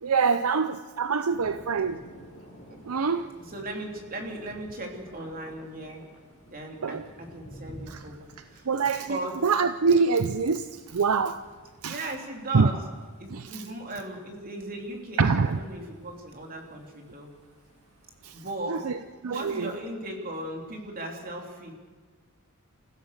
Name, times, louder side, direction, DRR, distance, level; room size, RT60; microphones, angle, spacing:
voice 1, 0.0-2.0 2.9-3.3 6.8-7.0 7.9-8.0 8.7-9.2 9.4-11.4 11.8-12.0 12.5-12.7 13.3-13.6 15.2-15.6 18.2-18.4 18.7-19.0 19.2-19.7, right 5 dB, 70° right, 11 dB, 0.6 m, -25 dB
Thunder, 1.3-19.1, equal, 35° left, 5.9 m, -52 dB
voice 2, 3.4-6.1 6.5-9.4 11.9-12.8 13.2-17.3 18.3-18.8 19.2-21.7, right 1 dB, 40° right, 2 dB, 3.4 m, -37 dB
Telephone, 5.1-6.2, equal, 25° right, 6.7 m, -50 dB
28.5 x 15.0 x 6.7 m, 1.4 s
head